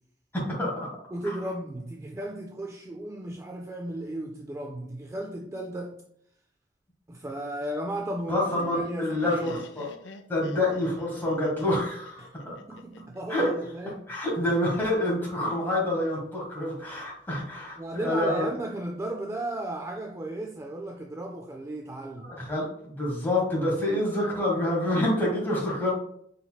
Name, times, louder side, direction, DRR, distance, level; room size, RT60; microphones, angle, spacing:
voice 1, 0.3-0.9 1.2-1.4 8.3-9.9 10.3-12.6 13.3-13.5 14.1-18.5 22.2-25.9, left 1 dB, 10° left, 1.6 m, -27 dB
voice 2, 1.1-6.0 7.1-9.6 12.2-12.3 12.7-14.0 17.8-22.3, right 1 dB, 15° right, 0.3 m, -35 dB
Laughter, 8.1-13.2, left 4 dB, 85° left, 0.4 m, -46 dB
5.3 x 4.1 x 2.2 m
head